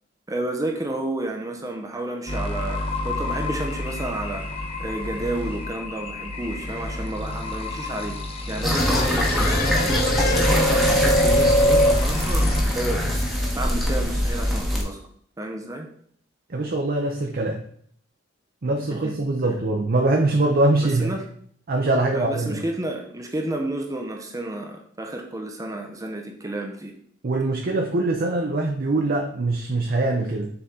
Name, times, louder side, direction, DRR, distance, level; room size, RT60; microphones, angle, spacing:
voice 1, 0.3-4.4 4.8-8.2 8.5-10.0 10.3-13.0 13.5-15.0 15.4-15.9 18.9-19.1 20.8-21.2 22.1-27.0, right 1 dB, 20° right, 3 dB, 0.7 m, -31 dB
sound 1, 2.3-12.6, equal, 30° left, 0.9 m, -25 dB
sound 2, 8.6-14.8, equal, ahead, 1.2 m, -23 dB
Laughter, 8.7-11.4 11.7-14.6, left 7 dB, 50° left, 0.4 m, -35 dB
voice 2, 16.5-17.6 18.6-21.1 21.7-22.6 27.2-30.5, right 2 dB, 50° right, 2 dB, 0.7 m, -23 dB
6.9 x 4.0 x 3.7 m, 0.63 s
head